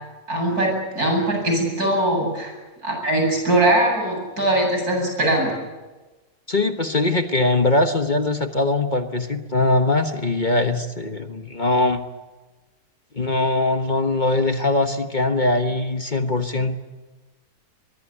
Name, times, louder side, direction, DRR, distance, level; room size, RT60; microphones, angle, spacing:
voice 1, 0.3-2.5 2.8-5.5, right 1 dB, 85° right, 2 dB, 8.8 m, -21 dB
voice 2, 6.5-12.0 13.1-16.8, left 2 dB, 35° left, 7 dB, 1.4 m, -21 dB
23.5 x 22.0 x 10.0 m, 1.2 s
omnidirectional pair, 1.6 m